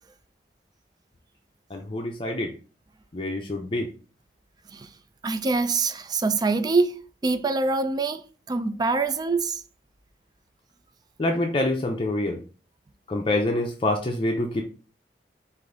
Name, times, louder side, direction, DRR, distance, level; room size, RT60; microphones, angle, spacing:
voice 1, 1.7-2.5 3.1-3.9 11.2-12.4 13.1-14.6, left 1 dB, 30° left, 0.5 m, -26 dB
voice 2, 5.2-8.2 8.5-9.6, right 3 dB, 25° right, 0.3 m, -24 dB
5.1 x 2.6 x 3.7 m
head